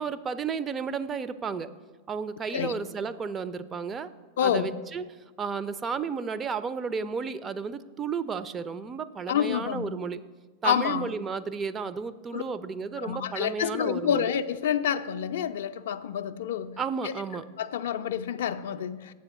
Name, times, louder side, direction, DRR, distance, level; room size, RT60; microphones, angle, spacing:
voice 1, 0.0-1.7 2.1-4.1 4.4-5.0 5.4-10.2 10.6-14.3 16.8-17.4, right 5 dB, 20° right, 13 dB, 0.3 m, -33 dB
voice 2, 4.4-4.7 9.3-9.9 10.6-11.1 12.3-12.4 13.0-16.7 17.0-17.1 17.6-19.1, left 8 dB, 60° left, 11 dB, 0.3 m, -28 dB
7.8 x 4.3 x 7.0 m, 1.3 s
figure-of-eight pair, 90°, 0 cm